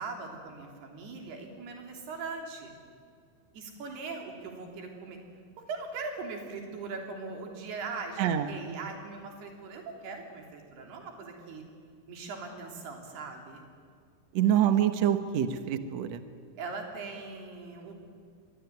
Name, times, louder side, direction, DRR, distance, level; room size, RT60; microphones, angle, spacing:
voice 1, 0.0-2.7 3.5-5.2 5.7-11.6 12.1-13.7 16.6-17.9, right 4 dB, 85° right, 2 dB, 5.3 m, -40 dB
voice 2, 8.2-8.5 14.3-16.2, right 10 dB, 60° right, 9 dB, 1.9 m, -26 dB
24.5 x 20.5 x 9.4 m, 2.1 s
omnidirectional pair, 4.5 m